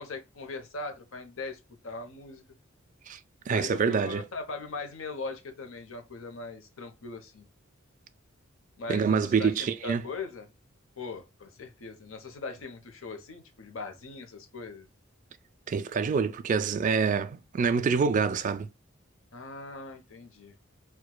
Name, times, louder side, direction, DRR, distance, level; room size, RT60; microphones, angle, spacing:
voice 1, 0.0-2.4 3.5-7.5 8.8-10.5 11.0-14.9 19.3-20.5, left 3 dB, 85° left, 0.8 m, -40 dB
voice 2, 3.5-4.2 8.9-10.0 15.7-18.7, right 5 dB, 40° right, 0.3 m, -26 dB
4.5 x 2.3 x 2.2 m
head